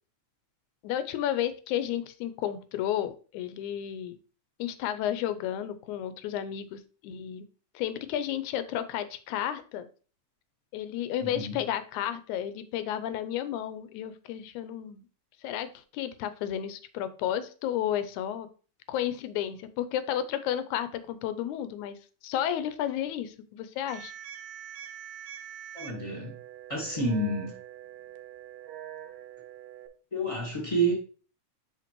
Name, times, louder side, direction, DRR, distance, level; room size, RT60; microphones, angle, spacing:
voice 1, 0.8-4.2 4.6-7.5 7.8-9.9 10.7-15.1 15.4-18.5 18.9-22.0 22.2-24.1, left 11 dB, 85° left, 2.1 m, -32 dB
voice 2, 11.2-11.6 25.7-26.3 26.7-27.5 30.1-30.9, right 2 dB, 15° left, 1.2 m, -29 dB
sound 1, 23.9-29.9, right 11 dB, 80° right, 1.9 m, -44 dB
5.8 x 5.7 x 2.9 m
omnidirectional pair, 3.3 m